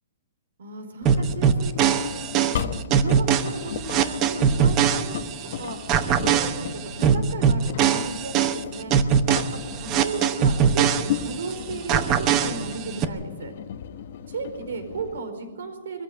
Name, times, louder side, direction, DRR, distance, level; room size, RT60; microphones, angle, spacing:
voice 1, 0.6-5.9 6.2-9.0 9.5-13.5 14.3-16.0, right 4 dB, 80° right, 7 dB, 4.8 m, -35 dB
Engine, 1.0-15.2, left 8 dB, 50° left, 1.2 m, -36 dB
sound 1, 1.1-5.5 5.9-11.5 11.9-13.1, right 8 dB, 20° right, 0.9 m, -22 dB
21.5 x 14.5 x 9.1 m, 1.2 s
hypercardioid pair, 170°, 0 cm